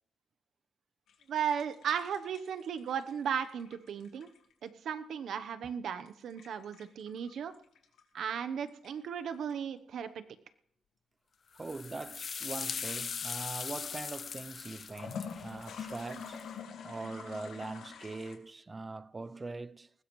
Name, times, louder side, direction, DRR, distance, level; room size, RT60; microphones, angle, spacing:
sound 1, 1.1-4.7 6.0-8.0 8.7-9.5 14.8-18.4, left 6 dB, 80° left, 1.9 m, -46 dB
voice 1, 1.3-4.3 4.6-7.5 8.1-10.2, right 8 dB, 75° right, 0.9 m, -36 dB
sound 2, 11.6-16.4, left 6 dB, 50° left, 0.5 m, -40 dB
voice 2, 11.6-16.5 16.8-19.9, right 3 dB, 25° right, 0.5 m, -42 dB
20.0 x 16.0 x 3.2 m
cardioid pair, 85°, 0 cm